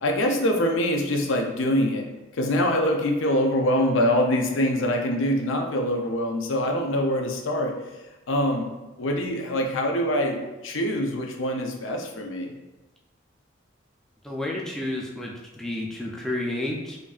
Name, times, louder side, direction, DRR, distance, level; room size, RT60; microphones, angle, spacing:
voice 1, 0.0-2.1 2.3-7.8 8.3-8.7 9.0-12.5, left 1 dB, 85° left, 2 dB, 0.6 m, -24 dB
voice 2, 14.2-17.0, left 1 dB, 5° left, -3 dB, 0.4 m, -31 dB
5.0 x 2.6 x 2.4 m, 1.1 s
head